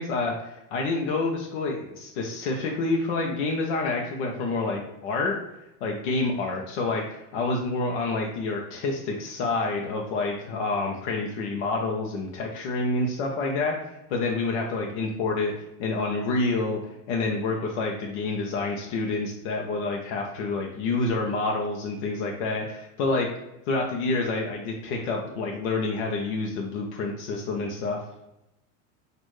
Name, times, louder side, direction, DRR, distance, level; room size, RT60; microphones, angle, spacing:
voice 1, 0.0-5.4 5.8-13.8 14.1-15.5 15.8-16.8 17.1-23.3 23.7-28.0, left 3 dB, 65° left, 0 dB, 0.8 m, -28 dB
6.3 x 2.6 x 3.1 m, 0.89 s
supercardioid pair, 170°, 37 cm